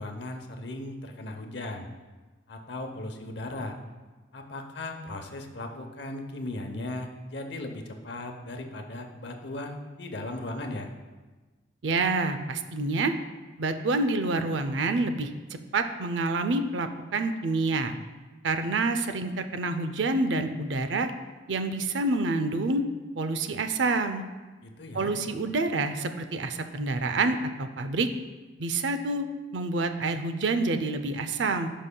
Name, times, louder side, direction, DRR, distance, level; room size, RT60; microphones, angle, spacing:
voice 1, 0.0-1.9 2.5-3.8 4.3-10.9 24.6-25.1, left 2 dB, 60° left, 4 dB, 0.8 m, -37 dB
voice 2, 11.8-13.1 13.6-17.9 18.4-21.1 21.5-22.8 23.2-24.2 24.9-28.1 28.6-29.3 29.5-31.7, right 3 dB, 70° right, 9 dB, 0.5 m, -27 dB
15.0 x 5.4 x 2.3 m, 1.3 s
head